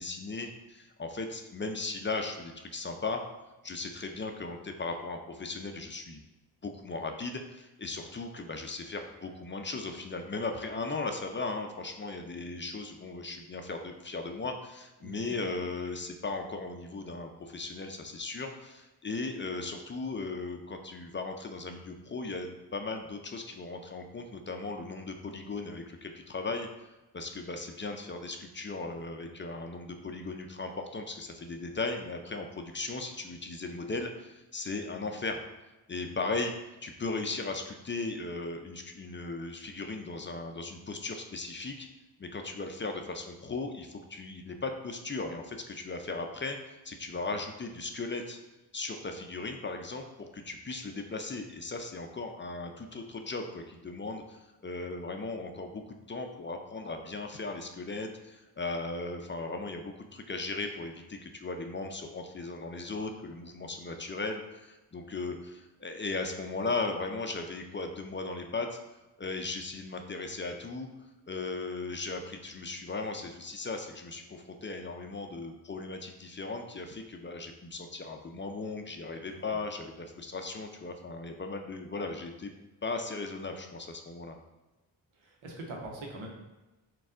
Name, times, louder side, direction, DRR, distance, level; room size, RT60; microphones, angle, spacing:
voice 1, 0.0-3.2 3.6-6.2 6.6-26.7 27.1-35.4 35.9-36.5 36.8-41.9 42.2-48.4 48.7-68.8 69.2-70.9 71.3-82.5 82.8-84.4, left 3 dB, 25° left, 4 dB, 0.4 m, -37 dB
voice 2, 15.0-15.4 47.3-47.4 79.2-79.6 85.1-86.3, right 1 dB, 90° right, 0 dB, 0.8 m, -44 dB
4.0 x 2.3 x 3.7 m, 1.0 s
supercardioid pair, 40°, 46 cm